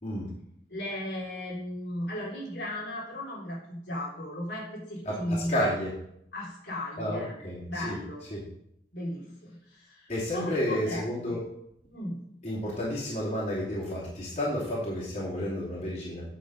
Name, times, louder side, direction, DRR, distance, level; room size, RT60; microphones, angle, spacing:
voice 1, 0.7-5.6 6.3-7.3 7.7-8.2 8.9-11.4 11.9-12.2, left 1 dB, 80° left, -6 dB, 3.3 m, -36 dB
voice 2, 5.1-5.9 7.0-8.0 8.3-8.4 10.1-11.4 12.4-16.2, equal, 40° left, -7 dB, 2.8 m, -31 dB
9.0 x 6.4 x 5.2 m, 0.75 s
head